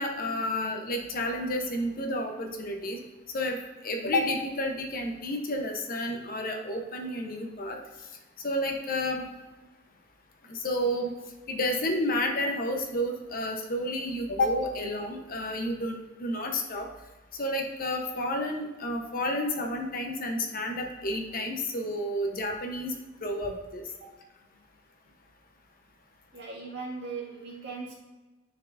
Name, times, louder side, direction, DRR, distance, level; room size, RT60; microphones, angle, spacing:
voice 1, 0.0-3.0 3.3-3.6 3.8-7.8 8.4-9.3 10.5-11.1 11.5-15.9 16.2-16.9 17.4-22.9 23.2-23.8, left 1 dB, 50° left, 3 dB, 0.9 m, -30 dB
voice 2, 26.3-27.9, right 4 dB, 65° right, -4 dB, 2.0 m, -38 dB
9.9 x 4.6 x 2.6 m, 1.2 s
head